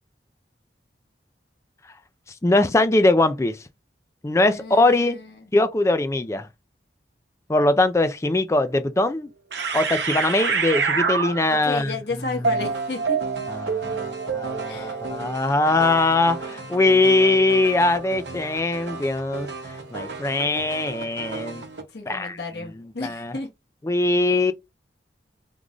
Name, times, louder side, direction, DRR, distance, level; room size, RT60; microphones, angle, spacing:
voice 1, 2.4-3.6 4.2-5.2 5.5-6.5 7.5-9.3 9.7-12.4 13.5-21.6 22.1-22.4 23.0-23.4 23.8-24.5, left 2 dB, 15° left, 0.3 m, -21 dB
voice 2, 4.5-5.3 11.5-13.2 14.7-15.0 21.9-23.5, left 3 dB, 70° left, 1.0 m, -32 dB
sound 1, 8.7-8.8 9.5-11.7 12.4-21.8, right 5 dB, 80° right, 0.8 m, -29 dB
3.7 x 2.5 x 3.0 m
head